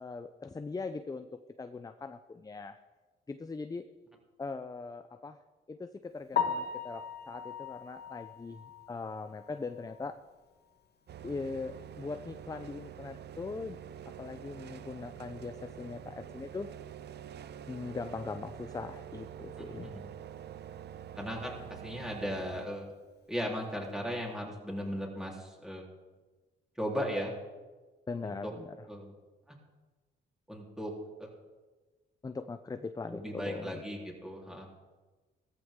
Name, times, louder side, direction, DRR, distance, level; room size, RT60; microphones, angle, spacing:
voice 1, 0.0-2.8 3.3-3.9 4.4-5.4 5.7-10.2 11.2-13.8 14.1-16.7 17.7-19.9 28.1-28.9 32.2-33.8, left 4 dB, 20° left, 9 dB, 0.6 m, -40 dB
Piano, 6.3-10.3 10.7-10.8 11.3-11.4 11.7-11.8 14.9-15.0 23.5-23.7, left 7 dB, 55° left, 1.5 m, -38 dB
sound 1, 11.1-22.7, right 9 dB, 55° right, 0.6 m, -46 dB
voice 2, 21.2-22.9 23.3-25.9 26.8-27.4 28.2-28.5 28.9-29.1 29.5-29.6 30.5-30.9 31.2-31.3 33.1-34.7, equal, 5° right, -2 dB, 3.7 m, -37 dB
15.5 x 14.0 x 3.8 m, 1.3 s
cardioid pair, 90°, 20 cm